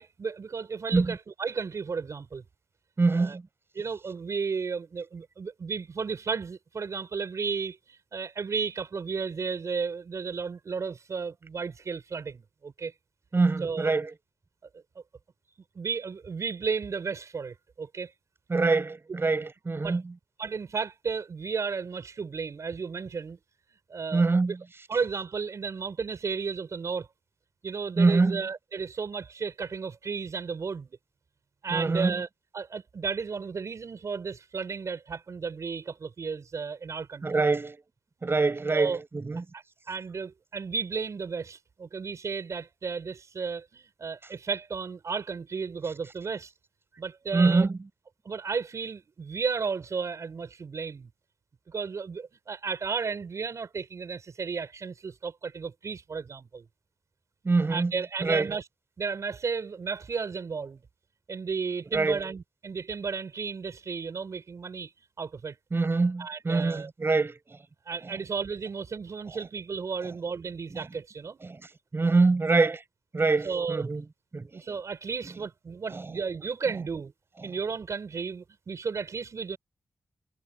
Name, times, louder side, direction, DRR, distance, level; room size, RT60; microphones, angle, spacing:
voice 1, 0.0-2.4 3.1-3.4 3.7-12.9 13.6-13.9 14.9-15.0 15.7-18.1 19.8-20.0 20.4-23.4 23.9-24.3 24.9-27.1 27.6-31.0 31.6-32.3 32.5-37.4 38.7-39.0 39.5-46.5 47.0-47.7 48.2-51.1 51.7-56.7 57.7-58.7 59.0-60.8 61.3-64.9 65.2-65.6 66.2-66.9 67.9-71.4 73.4-73.9 74.5-77.1 77.4-79.6, right 5 dB, 65° right, 6.1 m, -33 dB
voice 2, 3.0-3.4 13.3-14.1 18.5-20.0 24.1-24.6 28.0-28.4 31.7-32.1 37.2-37.8 38.2-39.4 47.3-47.7 57.4-57.9 58.2-58.5 61.9-62.2 65.7-67.3 71.4-71.6 71.9-72.8 73.1-74.0 74.3-74.5, right 3 dB, 45° right, 6.1 m, -24 dB
supercardioid pair, 45°, 6 cm